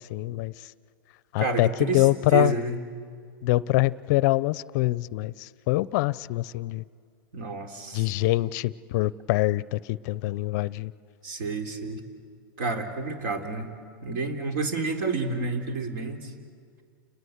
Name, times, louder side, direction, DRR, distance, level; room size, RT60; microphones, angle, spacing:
voice 1, 0.1-0.5 1.3-1.7 1.9-2.5 3.4-6.8 7.9-10.9, left 19 dB, 50° left, 20 dB, 0.5 m, -24 dB
voice 2, 1.4-2.8 7.3-8.0 11.2-12.0 12.6-13.7 14.0-16.3, right 3 dB, 60° right, 5 dB, 3.6 m, -29 dB
29.5 x 20.5 x 8.1 m, 2.2 s
hypercardioid pair, 130°, 12 cm